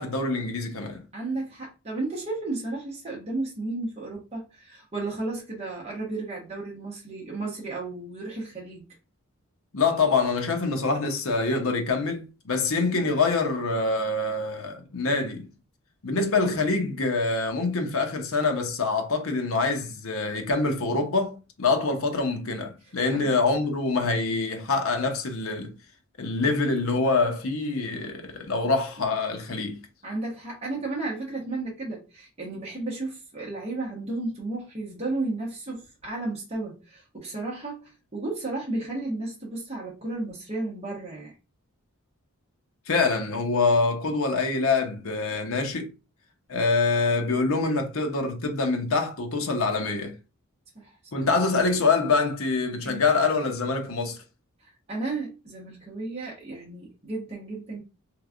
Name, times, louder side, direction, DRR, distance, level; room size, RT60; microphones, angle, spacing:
voice 1, 0.0-1.0 9.7-15.5 16.0-25.7 26.2-29.8 42.9-45.9 46.5-50.1 51.1-54.2, left 3 dB, 65° left, 0.8 m, -25 dB
voice 2, 1.1-8.8 17.8-17.9 22.8-23.4 30.0-41.3 50.7-51.2 52.8-53.0 54.6-57.8, right 2 dB, 30° right, 1.0 m, -33 dB
3.3 x 3.2 x 2.4 m
head